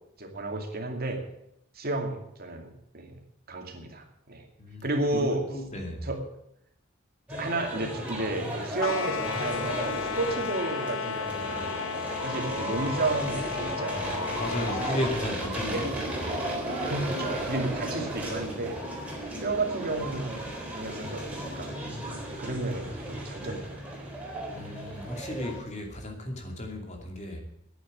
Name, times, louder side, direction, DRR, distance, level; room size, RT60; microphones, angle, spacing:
voice 1, 0.2-1.2 1.7-3.2 3.5-4.5 4.8-5.5 6.0-6.2 7.3-11.8 12.2-14.4 14.8-14.9 15.2-15.3 15.5-16.4 16.9-18.8 19.4-21.7 22.3-23.8 25.1-25.2, right 2 dB, 45° right, 2.5 m, -32 dB
voice 2, 4.6-6.1 14.4-15.9 24.5-27.4, left 1 dB, 35° left, 2.7 m, -35 dB
sound 1, 7.3-25.6, right 1 dB, 5° right, 3.9 m, -35 dB
sound 2, 8.8-15.0, left 7 dB, 65° left, 0.6 m, -34 dB
10.5 x 9.1 x 9.5 m
head